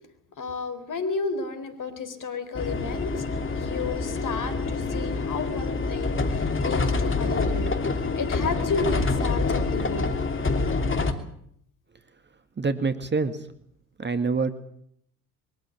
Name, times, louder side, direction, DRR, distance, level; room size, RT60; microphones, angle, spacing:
voice 1, 0.4-3.3 3.6-6.2 6.6-7.8 8.2-10.2, left 4 dB, 45° left, 11 dB, 4.1 m, -32 dB
sound 1, 2.5-11.1, left 3 dB, 25° left, 3.0 m, -26 dB
voice 2, 12.6-13.4 14.0-14.5, right 4 dB, 25° right, 9 dB, 2.0 m, -25 dB
23.5 x 14.5 x 9.2 m, 0.69 s
hypercardioid pair, 60°, 45 cm